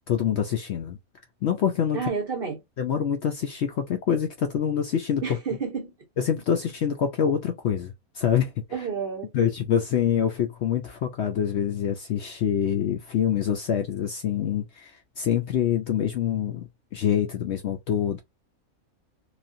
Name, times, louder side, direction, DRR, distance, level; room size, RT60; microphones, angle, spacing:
voice 1, 0.1-1.0 1.4-2.0 2.8-5.4 6.2-8.5 9.3-18.2, left 9 dB, 65° left, 0.7 m, -26 dB
voice 2, 1.9-2.6 5.2-5.9 8.7-9.3, right 5 dB, 45° right, 1.0 m, -30 dB
3.0 x 2.4 x 2.6 m
omnidirectional pair, 1.5 m